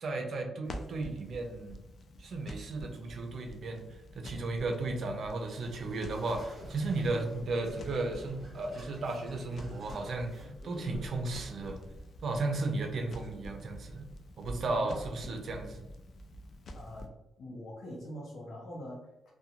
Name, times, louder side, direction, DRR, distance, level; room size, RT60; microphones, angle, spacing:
voice 1, 0.0-1.8 2.2-11.8 12.2-14.0 14.4-15.9, right 2 dB, 55° right, 4 dB, 0.4 m, -35 dB
Crackle, 0.6-17.1, equal, 55° left, 0.3 m, -48 dB
sound 1, 5.2-15.6, equal, 25° right, 0.8 m, -54 dB
sound 2, 6.6-11.9, left 1 dB, 15° left, 0.8 m, -51 dB
voice 2, 14.6-15.1 16.7-17.1 17.4-19.3, equal, 70° left, -4 dB, 0.7 m, -44 dB
2.4 x 2.2 x 2.8 m, 0.95 s
cardioid pair, 135°, 0 cm